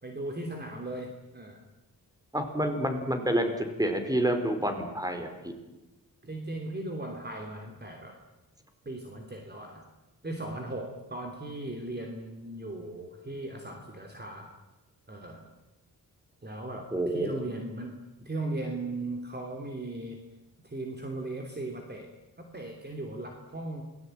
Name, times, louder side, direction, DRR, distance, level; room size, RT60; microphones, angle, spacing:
voice 1, 0.0-1.6 6.2-8.2 8.8-9.9 10.2-14.5 15.1-15.5 16.4-17.9 18.2-20.2 20.6-23.8, right 2 dB, 30° right, 3 dB, 3.1 m, -38 dB
voice 2, 2.3-5.5 16.9-17.4, right 1 dB, 10° right, 6 dB, 4.3 m, -28 dB
28.0 x 19.0 x 9.1 m, 1.0 s
wide cardioid pair, 115°, 35 cm